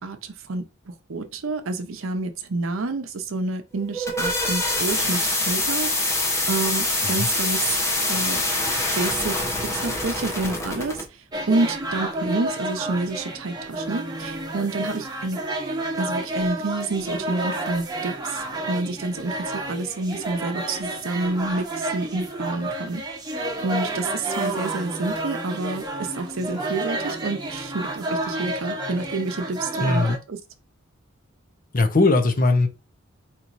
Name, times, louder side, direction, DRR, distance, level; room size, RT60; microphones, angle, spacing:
voice 1, 0.0-5.2 5.5-7.7 8.1-8.4 9.0-11.0 11.5-15.4 16.0-23.0 23.6-30.4, right 3 dB, 75° right, 0.7 m, -28 dB
sound 1, 3.8-11.1, left 2 dB, 15° left, 0.8 m, -25 dB
sound 2, 11.3-30.2, right 1 dB, 20° right, 0.8 m, -30 dB
voice 2, 29.8-30.2 31.7-32.7, left 2 dB, 45° left, 0.7 m, -19 dB
4.3 x 3.0 x 2.6 m
head